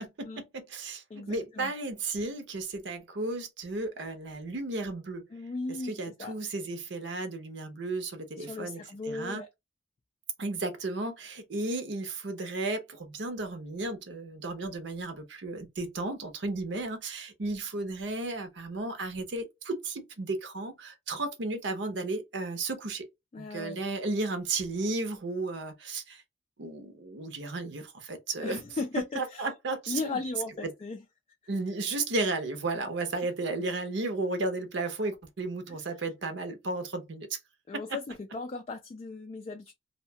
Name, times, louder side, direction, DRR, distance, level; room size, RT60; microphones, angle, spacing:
voice 1, 0.0-5.2 5.9-8.8 9.1-9.4 10.4-23.1 23.4-26.2 26.6-28.6 29.2-30.2 30.6-30.7 31.5-37.4, right 2 dB, 70° right, 0.7 m, -34 dB
voice 2, 1.1-1.7 5.3-6.3 8.4-9.5 23.3-23.9 28.4-29.5 29.9-31.0 35.7-35.8 37.7-39.7, left 3 dB, 35° left, 0.3 m, -37 dB
2.7 x 2.1 x 2.7 m
head